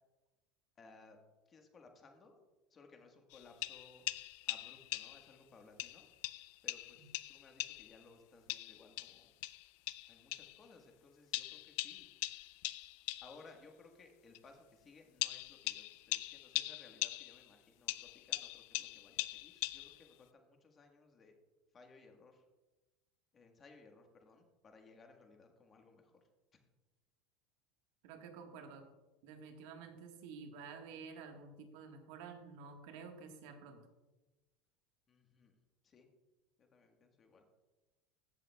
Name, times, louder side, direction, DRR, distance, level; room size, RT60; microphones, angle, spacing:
voice 1, 0.8-1.2 1.5-2.4 2.7-6.1 6.6-9.3 10.1-12.4 13.2-21.3 21.7-22.4 23.3-26.2 26.5-26.7 35.1-35.6 35.8-36.1 36.6-37.4, left 4 dB, 25° left, 3 dB, 1.5 m, -61 dB
sound 1, 3.3-5.3 5.8-8.0 8.5-10.6 11.3-13.4 14.3-14.4 15.2-17.5 17.9-20.1, left 19 dB, 70° left, 0.3 m, -41 dB
voice 2, 28.0-28.8 29.2-33.8, right 5 dB, 70° right, 4 dB, 1.5 m, -51 dB
15.5 x 7.3 x 2.3 m, 1.1 s
supercardioid pair, 125°, 0 cm